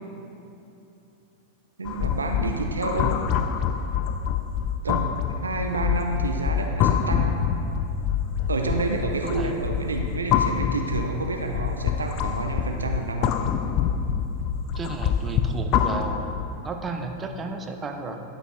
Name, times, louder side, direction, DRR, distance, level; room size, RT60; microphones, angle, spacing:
sound 1, 1.8-16.6, left 8 dB, 40° left, 0.4 m, -26 dB
voice 1, 1.8-3.3 4.8-7.4 8.5-13.4, right 3 dB, 75° right, 3 dB, 0.5 m, -29 dB
voice 2, 9.2-9.6 14.7-16.3 16.6-18.2, right 3 dB, 20° right, 4 dB, 0.7 m, -33 dB
12.0 x 5.1 x 3.2 m, 2.8 s
figure-of-eight pair, 90°, 0 cm